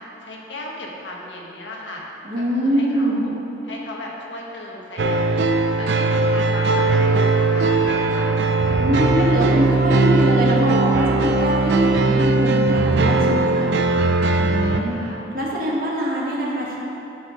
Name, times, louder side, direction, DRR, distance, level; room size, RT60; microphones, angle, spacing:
voice 1, 0.0-2.0 2.3-3.3 3.6-8.4 12.9-13.8 14.4-15.2, left 1 dB, 85° left, -2 dB, 1.6 m, -36 dB
voice 2, 2.2-3.2 8.8-13.7 14.4-15.0 15.3-16.7, right 1 dB, 50° right, -4 dB, 1.7 m, -23 dB
sound 1, 5.0-14.8, right 3 dB, 70° right, 0.5 m, -19 dB
10.0 x 6.0 x 5.2 m, 3.0 s
head